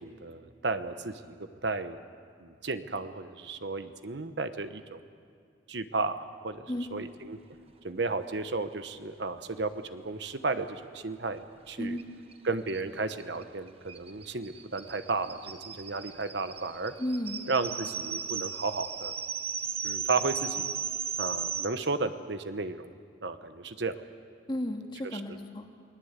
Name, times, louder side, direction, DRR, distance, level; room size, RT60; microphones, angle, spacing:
voice 1, 0.0-1.4 1.6-2.0 2.4-5.0 5.7-6.6 6.9-7.4 7.8-12.0 12.4-16.9 17.5-19.2 19.8-20.7 21.2-22.9 23.2-23.9 25.1-25.2, right 3 dB, 60° right, 10 dB, 1.0 m, -33 dB
sound 1, 12.0-12.1 12.3-12.4 12.7-21.7, right 7 dB, 30° right, 1.2 m, -36 dB
voice 2, 17.0-17.4 24.5-25.7, left 1 dB, 25° left, 3 dB, 2.1 m, -33 dB
28.5 x 20.0 x 8.2 m, 2.4 s
head